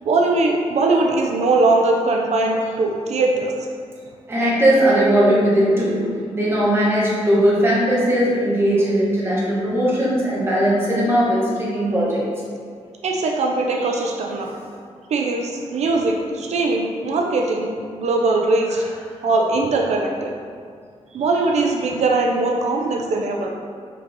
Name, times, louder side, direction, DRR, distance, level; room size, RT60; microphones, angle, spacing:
voice 1, 0.0-3.5 13.0-14.5 15.1-17.7 18.0-18.8 19.2-20.3 21.1-23.5, right 3 dB, 70° right, 1 dB, 0.6 m, -20 dB
voice 2, 4.3-6.0 6.3-12.2, equal, 20° right, -7 dB, 1.6 m, -18 dB
6.2 x 5.7 x 3.7 m, 2.1 s
wide cardioid pair, 160°, 12 cm